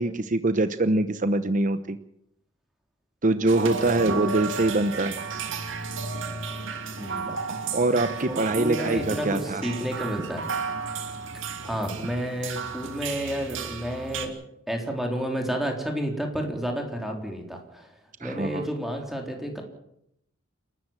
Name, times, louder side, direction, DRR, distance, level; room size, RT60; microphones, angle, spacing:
voice 1, 0.0-2.0 3.2-5.2 7.5-9.6 18.2-18.6, right 2 dB, 40° right, 11 dB, 0.9 m, -24 dB
sound 1, 3.5-14.3, right 4 dB, 70° right, 2.9 m, -33 dB
voice 2, 3.8-4.2 7.0-7.4 8.2-10.5 11.6-14.4 14.7-17.9 18.2-19.6, equal, ahead, 2 dB, 3.9 m, -31 dB
29.0 x 13.0 x 7.5 m, 0.76 s
head